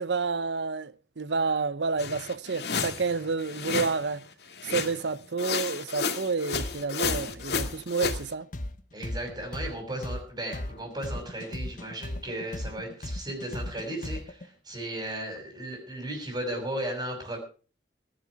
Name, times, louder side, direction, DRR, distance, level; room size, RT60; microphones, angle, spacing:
voice 1, 0.0-4.2 4.6-8.5, right 4 dB, 80° right, 0.8 m, -29 dB
sound 1, 2.0-4.1 4.6-5.1 5.4-8.2, left 5 dB, 65° left, 2.2 m, -32 dB
sound 2, 6.5-14.5, left 1 dB, 50° left, 1.2 m, -36 dB
voice 2, 8.9-17.4, right 1 dB, 25° right, 5.8 m, -35 dB
19.5 x 11.0 x 4.8 m
head